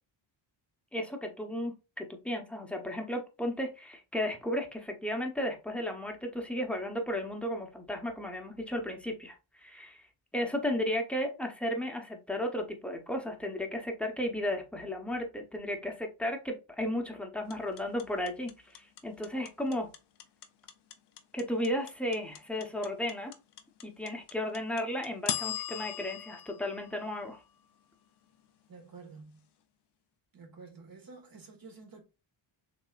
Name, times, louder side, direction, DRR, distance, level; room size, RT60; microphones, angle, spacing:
voice 1, 0.9-10.0 10.3-19.9 21.3-23.3 23.8-27.4, left 1 dB, ahead, 1.0 m, -34 dB
sound 1, 17.5-27.7, left 10 dB, 55° left, 0.7 m, -39 dB
voice 2, 28.7-29.4 30.3-32.0, right 4 dB, 45° right, 1.8 m, -50 dB
6.1 x 3.0 x 2.5 m
cardioid pair, 115°, 48 cm